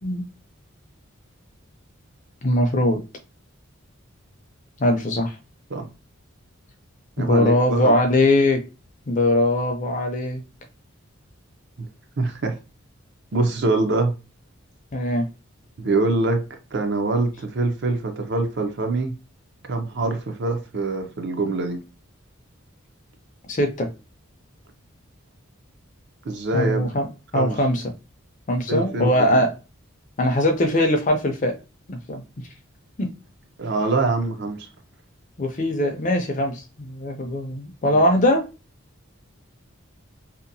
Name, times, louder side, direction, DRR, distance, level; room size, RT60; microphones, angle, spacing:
voice 1, 2.4-3.0 4.8-5.4 7.2-8.6 9.1-10.4 14.9-15.3 23.5-23.9 26.5-27.1 27.3-27.8 28.5-29.5 30.2-31.5 31.9-32.2 33.0-33.1 35.4-38.4, left 1 dB, 35° left, 0.4 m, -21 dB
voice 2, 7.2-7.9 11.8-11.9 12.2-12.5 13.3-14.1 15.8-16.4 16.7-19.1 19.7-21.8 26.2-26.8 27.3-27.6 28.7-29.4 33.6-34.7 37.9-38.0, right 3 dB, 55° right, 0.5 m, -24 dB
2.8 x 2.1 x 2.6 m
head